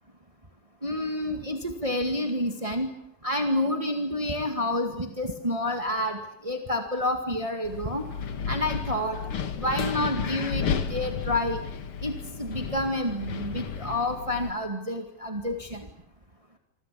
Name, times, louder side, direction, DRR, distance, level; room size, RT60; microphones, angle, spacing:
voice 1, 0.8-2.9 3.2-8.0 8.5-9.2 9.6-11.6 12.0-15.9, left 1 dB, 20° right, 4 dB, 1.0 m, -29 dB
Wind, 7.6-14.5, left 6 dB, 50° left, 1.8 m, -32 dB
27.0 x 25.5 x 8.5 m, 0.74 s
omnidirectional pair, 4.4 m